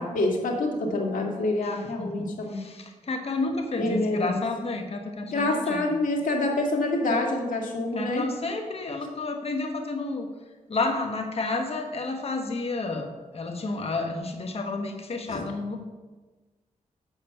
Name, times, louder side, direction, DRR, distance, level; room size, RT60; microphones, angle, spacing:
voice 1, 0.0-2.6 3.8-4.4 5.3-8.2 15.3-15.4, left 2 dB, 80° left, 1 dB, 1.9 m, -26 dB
voice 2, 1.6-5.9 7.9-10.3 10.7-15.8, left 3 dB, 50° left, 4 dB, 1.1 m, -31 dB
8.3 x 7.3 x 5.7 m, 1.3 s
cardioid pair, 85°, 14 cm